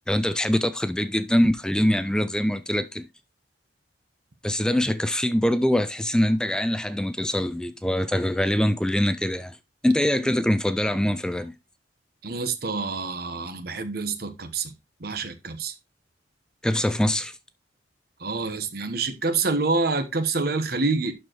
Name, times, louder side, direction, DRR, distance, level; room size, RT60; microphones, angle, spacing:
voice 1, 0.1-3.1 4.4-9.6 9.8-11.5 16.6-17.4, left 1 dB, 5° left, 0.3 m, -23 dB
voice 2, 12.2-14.7 15.0-15.7 18.2-21.1, right 3 dB, 55° right, 1.1 m, -27 dB
11.5 x 4.5 x 3.0 m
head